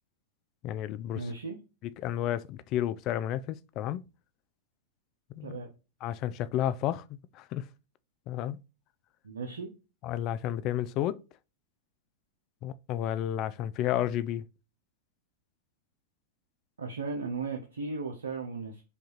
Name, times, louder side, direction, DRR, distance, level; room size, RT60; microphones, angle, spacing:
voice 1, 0.6-1.3 1.8-4.0 5.3-5.6 6.0-7.0 7.3-7.6 8.3-8.6 10.0-11.2 12.6-14.4, left 12 dB, 45° left, 0.3 m, -31 dB
voice 2, 1.1-1.6 5.4-5.7 9.2-9.7 16.8-18.8, right 4 dB, 85° right, 0.6 m, -36 dB
5.2 x 2.4 x 2.9 m
hypercardioid pair, 100°, 0 cm